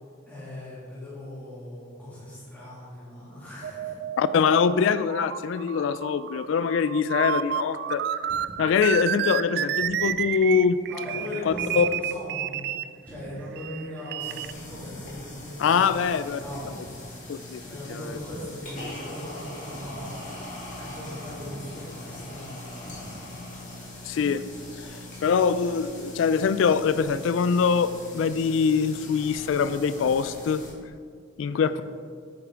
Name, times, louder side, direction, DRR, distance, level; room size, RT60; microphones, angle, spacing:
voice 1, 0.2-3.9 10.9-12.7 13.1-15.8 16.1-16.9 17.6-20.2 20.8-22.7 31.6-31.8, left 1 dB, 10° left, -10 dB, 2.4 m, -39 dB
sound 1, 3.6-12.9 13.6-14.5, right 10 dB, 55° right, 0.3 m, -30 dB
voice 2, 4.2-8.0 8.6-10.8 11.5-11.9 15.6-16.4 17.3-17.6 17.9-18.0 23.3-23.5 24.0-24.4 25.2-30.6 31.4-31.8, left 6 dB, 70° left, 14 dB, 0.3 m, -23 dB
sound 2, 8.2-8.7 9.6-10.3 11.5-11.9 13.0-13.5 14.7-15.1 16.4-16.8 18.1-18.5 19.7-20.1 21.3-21.7 22.8-23.3, equal, 25° right, 2.0 m, -45 dB
sound 3, 14.2-30.7, left 1 dB, 40° left, 2.4 m, -41 dB
9.5 x 8.3 x 3.7 m, 2.1 s
head